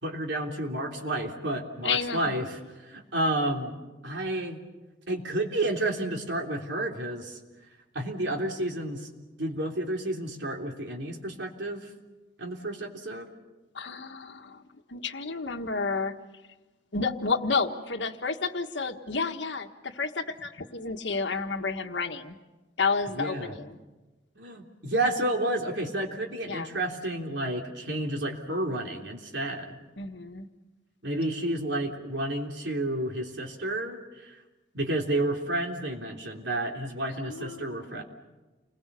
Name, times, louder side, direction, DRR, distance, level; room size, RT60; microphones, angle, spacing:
voice 1, 0.0-4.6 5.1-7.4 7.9-9.1 9.4-11.9 12.4-13.3 23.1-23.6 24.4-29.8 31.0-34.4 34.7-38.0, right 1 dB, 75° right, 2 dB, 3.5 m, -31 dB
voice 2, 1.8-2.5 13.7-14.6 14.9-16.1 16.9-22.4 22.8-23.8 26.5-26.7 30.0-30.5 37.2-38.0, left 4 dB, 75° left, 6 dB, 1.5 m, -31 dB
29.5 x 22.0 x 6.9 m, 1.2 s
head